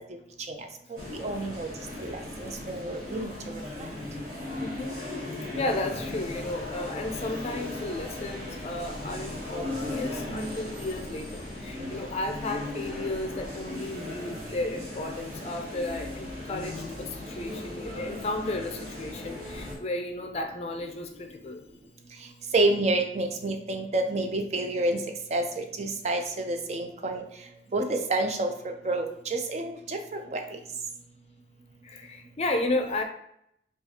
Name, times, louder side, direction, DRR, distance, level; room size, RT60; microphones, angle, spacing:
sound 1, 1.0-19.8, left 1 dB, 55° right, 1.6 m, -37 dB
voice 1, 1.1-1.7 2.0-3.6 11.8-11.9 22.5-25.0 25.3-27.2 27.7-28.5 28.8-30.6, right 2 dB, 40° right, 4 dB, 0.4 m, -29 dB
voice 2, 4.6-5.0 5.6-21.6 31.8-33.0, left 2 dB, 35° left, 5 dB, 0.4 m, -33 dB
5.7 x 2.4 x 2.8 m, 0.75 s
head